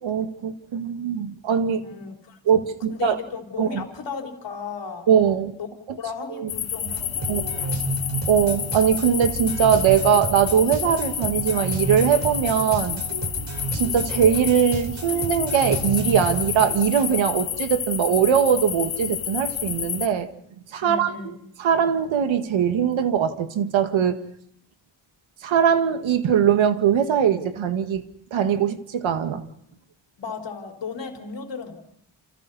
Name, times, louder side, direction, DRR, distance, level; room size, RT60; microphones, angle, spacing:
voice 1, 0.0-1.8 2.5-3.2 3.6-3.8 5.1-5.5 5.9-6.0 6.4-6.5 7.3-7.4 8.3-13.0 13.7-20.3 20.7-21.3 21.6-24.2 25.4-28.0 28.3-29.4, right 8 dB, 80° right, 1.9 m, -21 dB
voice 2, 1.8-5.1 5.6-5.7 6.0-7.9 20.8-21.4 30.2-31.8, left 5 dB, 65° left, 4.2 m, -35 dB
sound 1, 6.5-20.1, left 9 dB, 85° left, 2.4 m, -30 dB
sound 2, 6.9-17.2, right 3 dB, 35° right, 4.0 m, -31 dB
29.0 x 28.5 x 4.2 m
wide cardioid pair, 165°, 46 cm